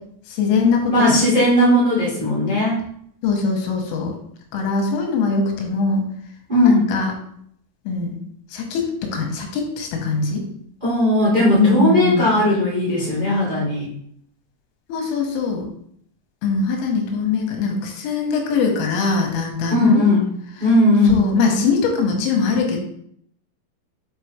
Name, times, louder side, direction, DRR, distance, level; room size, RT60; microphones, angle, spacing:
voice 1, 0.3-1.2 3.2-4.1 4.5-6.0 6.7-7.1 7.9-8.1 8.5-10.5 11.5-12.3 14.9-15.7 16.4-20.0 21.1-22.8, left 4 dB, 85° left, 2 dB, 3.7 m, -21 dB
voice 2, 0.9-2.8 6.5-6.9 10.8-13.9 19.7-20.2 20.6-21.2, left 1 dB, 15° right, -7 dB, 1.6 m, -17 dB
8.2 x 4.8 x 3.2 m, 0.68 s
omnidirectional pair, 5.7 m